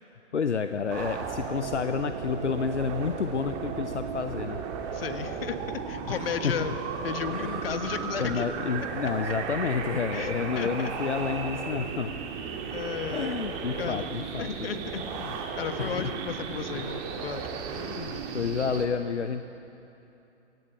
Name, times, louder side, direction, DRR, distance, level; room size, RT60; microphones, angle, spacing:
voice 1, 0.3-4.6 6.1-6.6 7.3-7.8 8.2-12.1 13.1-14.7 15.0-15.3 15.8-16.1 16.7-16.8 17.7-19.4, left 6 dB, 75° left, 9 dB, 0.9 m, -30 dB
sound 1, 0.9-18.9, right 6 dB, 30° right, 2.1 m, -35 dB
voice 2, 4.9-8.4 10.1-10.9 12.7-13.4 13.8-14.1 14.4-17.6, left 7 dB, 55° left, 9 dB, 1.6 m, -34 dB
25.5 x 17.5 x 7.5 m, 2.9 s
figure-of-eight pair, 120°, 35 cm